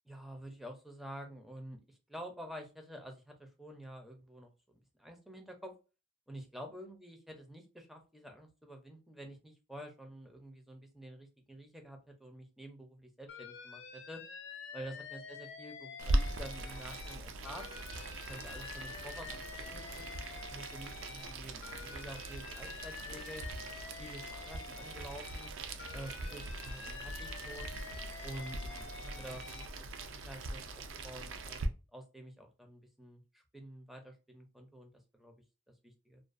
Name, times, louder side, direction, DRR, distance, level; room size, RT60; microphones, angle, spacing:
voice 1, 0.1-5.7 6.3-14.2 14.7-17.7 18.3-19.4 19.7-20.1 20.5-23.5 24.0-25.5 25.9-27.7 28.2-31.6 31.9-35.3 35.8-36.2, right 1 dB, ahead, 3 dB, 0.4 m, -49 dB
Alarm, 13.3-17.2 17.4-21.3 21.6-25.5 25.8-29.7, left 6 dB, 60° left, 0.4 m, -48 dB
Boiling, 16.0-31.7, right 2 dB, 60° right, 0.4 m, -40 dB
2.4 x 2.2 x 2.5 m, 0.31 s
head